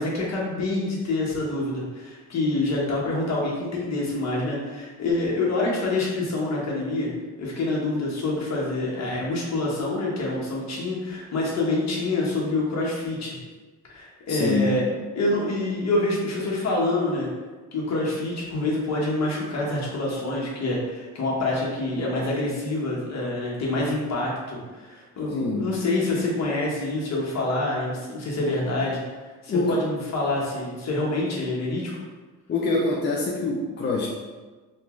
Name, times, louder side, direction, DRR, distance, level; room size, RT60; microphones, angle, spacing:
voice 1, 0.0-7.1 7.4-13.4 13.9-14.9 15.2-17.3 17.7-29.0 29.4-31.9, left 2 dB, 60° left, -4 dB, 1.1 m, -26 dB
voice 2, 14.3-14.7 25.3-25.7 29.5-29.8 32.5-34.1, left 3 dB, 35° left, -2 dB, 0.5 m, -25 dB
2.9 x 2.5 x 3.6 m, 1.3 s
cardioid pair, 90°, 30 cm